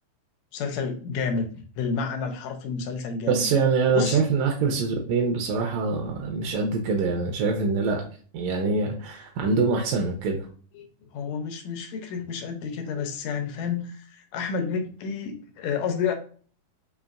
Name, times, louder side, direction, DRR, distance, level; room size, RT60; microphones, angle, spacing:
voice 1, 0.5-3.5 3.9-4.3 10.8-10.9 11.1-16.1, left 5 dB, 80° left, 5 dB, 1.8 m, -30 dB
voice 2, 3.3-8.0 8.3-10.5, right 4 dB, 85° right, 1 dB, 1.9 m, -24 dB
5.1 x 2.9 x 2.3 m, 0.43 s
omnidirectional pair, 3.4 m